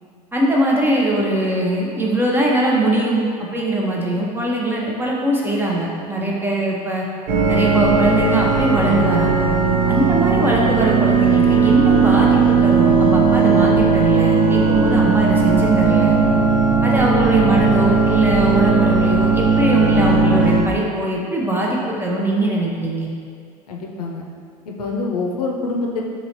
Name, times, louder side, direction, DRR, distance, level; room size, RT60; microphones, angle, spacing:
voice 1, 0.3-3.2 3.5-7.0 7.5-9.5 9.9-16.2 16.8-23.1, right 1 dB, 10° right, -3 dB, 0.7 m, -21 dB
sound 1, 7.3-20.6, right 4 dB, 45° right, 0.7 m, -16 dB
voice 2, 23.7-24.3 24.8-26.0, left 3 dB, 80° left, 0 dB, 0.5 m, -26 dB
4.0 x 2.8 x 2.8 m, 2.1 s
hypercardioid pair, 75°, 20 cm